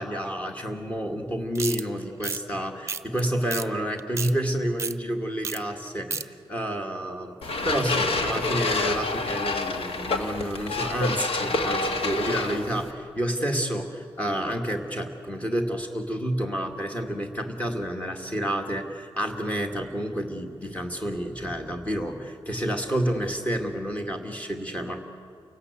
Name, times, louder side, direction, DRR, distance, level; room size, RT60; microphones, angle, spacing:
voice 1, 0.0-25.2, equal, 15° left, 3 dB, 2.2 m, -29 dB
sound 1, 1.6-1.8 2.2-2.4 2.9-3.2 3.5-3.7 4.0-4.3 4.8-4.9 5.4-5.6 5.9-6.2, right 5 dB, 30° right, 0.7 m, -31 dB
sound 2, 7.4-12.9, left 3 dB, 80° left, 1.7 m, -28 dB
29.0 x 17.5 x 8.3 m, 2.3 s
wide cardioid pair, 170°, 10 cm